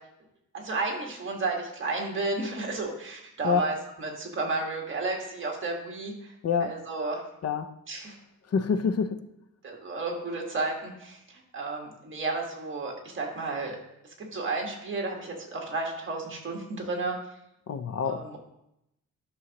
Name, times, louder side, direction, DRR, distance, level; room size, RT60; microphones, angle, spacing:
voice 1, 0.5-6.3 6.6-7.2 7.9-8.2 9.6-13.8 14.2-17.2 18.0-18.4, right 3 dB, 40° right, 1.6 m, -32 dB
voice 2, 6.4-6.7 7.4-7.7 8.5-9.3 17.7-18.3, left 6 dB, 50° left, 0.5 m, -27 dB
12.5 x 6.3 x 2.9 m
wide cardioid pair, 180°, 32 cm